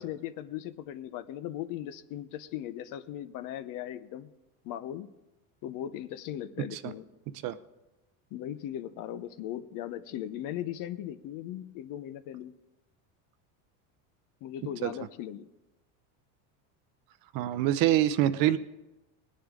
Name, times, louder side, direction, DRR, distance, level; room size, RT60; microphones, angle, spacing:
voice 1, 0.0-4.3 4.6-5.1 5.6-7.1 8.3-12.5 14.4-15.5, left 11 dB, 50° left, 13 dB, 0.8 m, -38 dB
voice 2, 17.3-18.6, right 13 dB, 55° right, 13 dB, 0.7 m, -25 dB
20.0 x 10.0 x 3.8 m, 1.0 s
supercardioid pair, 125°, 41 cm